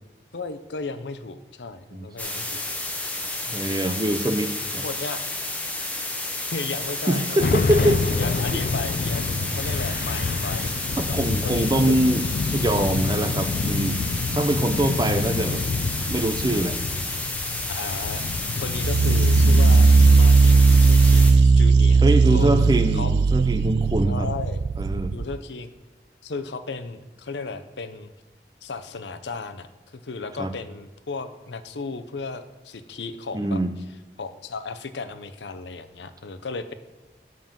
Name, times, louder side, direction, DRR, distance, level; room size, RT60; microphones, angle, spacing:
voice 1, 0.3-2.6 3.5-3.9 4.8-5.2 6.5-10.7 11.0-11.2 11.4-12.0 14.6-14.8 17.7-18.2 18.6-22.5 22.9-23.1 24.0-24.6 25.1-25.7 26.2-28.1 28.6-33.6 34.2-36.7, left 4 dB, 90° left, 11 dB, 0.7 m, -35 dB
sound 1, 2.2-21.3, left 2 dB, 10° left, 0.9 m, -31 dB
voice 2, 3.5-4.8 7.1-8.0 8.5-8.6 11.0-12.2 12.5-14.0 14.3-15.6 16.1-16.8 22.0-24.3 24.8-25.2 30.4-30.5 33.3-33.7, right 1 dB, 20° right, 9 dB, 0.6 m, -24 dB
sound 2, 7.4-20.2, left 4 dB, 55° left, 0.3 m, -27 dB
sound 3, 18.8-25.4, right 4 dB, 80° right, 0.3 m, -17 dB
7.5 x 5.4 x 7.3 m, 1.2 s
head